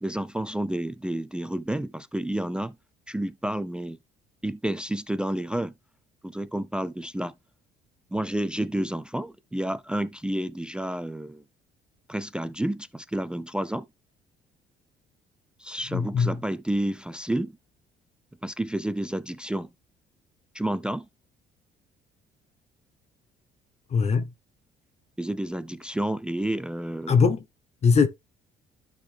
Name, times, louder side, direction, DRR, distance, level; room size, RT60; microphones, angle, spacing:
voice 1, 0.0-2.8 3.1-4.0 4.4-5.7 6.2-7.3 8.1-11.4 12.1-13.9 15.6-17.5 18.4-19.7 20.5-21.1 25.2-27.2, right 1 dB, 5° right, 0.4 m, -30 dB
voice 2, 15.9-16.4 23.9-24.3 27.1-27.4 27.8-28.1, left 5 dB, 40° left, 0.9 m, -21 dB
11.5 x 3.9 x 3.3 m
cardioid pair, 110°, 17 cm